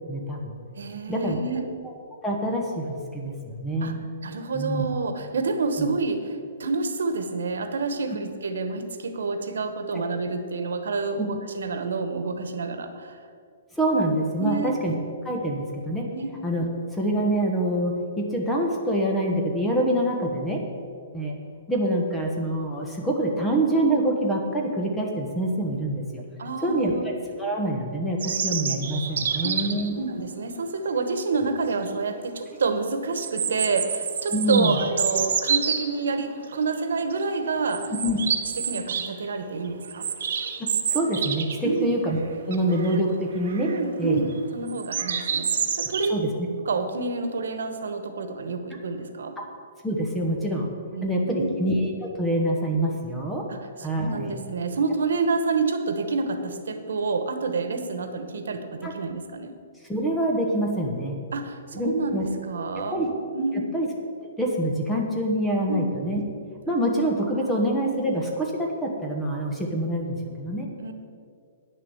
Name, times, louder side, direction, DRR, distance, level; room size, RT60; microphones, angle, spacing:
voice 1, 0.1-0.6 1.1-1.4 1.8-1.9 2.2-4.0 4.5-4.8 5.8-5.9 9.9-10.0 11.2-11.3 13.8-14.9 15.2-16.1 16.4-16.6 16.9-20.6 21.1-21.4 21.7-26.2 26.6-26.9 27.4-29.9 34.3-34.8 38.0-38.2 40.6-42.2 42.5-43.7 44.0-44.2 46.1-46.5 49.8-50.7 51.0-51.9 52.2-53.4 53.8-54.4 58.8-58.9 59.9-61.2 61.7-62.2 62.9-63.1 63.7-63.9 64.4-66.2 66.7-70.7, right 1 dB, 5° left, -1 dB, 1.1 m, -25 dB
voice 2, 0.8-1.6 3.8-3.9 4.2-13.2 14.4-14.7 16.1-16.3 26.4-27.0 29.1-29.7 30.0-37.9 38.6-40.1 41.6-41.9 43.7-44.3 44.5-46.1 46.6-49.3 50.9-51.5 53.5-59.5 61.3-62.2 62.5-63.0 63.3-63.6 65.7-65.8 67.4-67.5 70.8-70.9, right 4 dB, 90° right, 8 dB, 1.2 m, -28 dB
sound 1, 28.2-29.9 31.4-31.5 31.9-32.0 33.1-35.8 36.5-36.8 37.1-37.2 37.7-39.1 39.4-41.7 42.0-42.1 42.5-43.0 43.4-43.8 44.7-46.1, right 7 dB, 60° right, 1.0 m, -28 dB
9.7 x 6.8 x 7.0 m, 2.2 s
hypercardioid pair, 170°, 0 cm